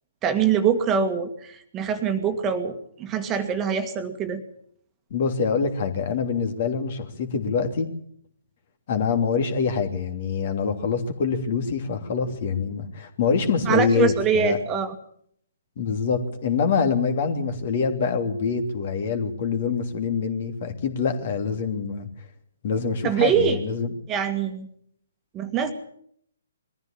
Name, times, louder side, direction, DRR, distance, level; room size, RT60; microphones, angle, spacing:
voice 1, 0.2-4.4 13.7-15.0 23.0-23.6 24.1-24.7 25.3-25.7, right 7 dB, 20° right, 7 dB, 1.9 m, -24 dB
voice 2, 5.1-7.9 8.9-14.6 15.8-22.1 22.6-23.9, left 5 dB, 45° left, 7 dB, 3.0 m, -25 dB
22.0 x 14.5 x 8.7 m, 0.66 s
figure-of-eight pair, 130°, 0 cm